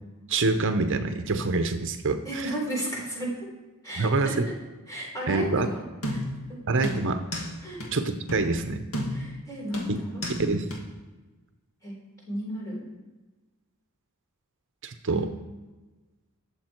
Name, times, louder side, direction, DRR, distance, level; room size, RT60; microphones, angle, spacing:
voice 1, 0.3-2.5 4.0-4.5 5.3-5.7 6.7-7.2 7.9-8.8 9.9-10.0 10.4-10.7 14.8-15.3, right 3 dB, 60° right, 8 dB, 0.8 m, -26 dB
voice 2, 2.2-3.3 3.8-4.5 4.9-5.8 6.1-6.2 7.6-7.8 9.1-10.2 11.8-12.0 12.3-12.8 15.1-15.5, right 1 dB, 15° left, -3 dB, 4.2 m, -33 dB
sound 1, 6.0-6.5 6.8-7.5 7.8-7.9 8.3-8.5 8.9-9.4 9.7-10.4 10.7-10.8, equal, 65° left, 2.3 m, -32 dB
20.0 x 7.3 x 4.5 m, 1.2 s
head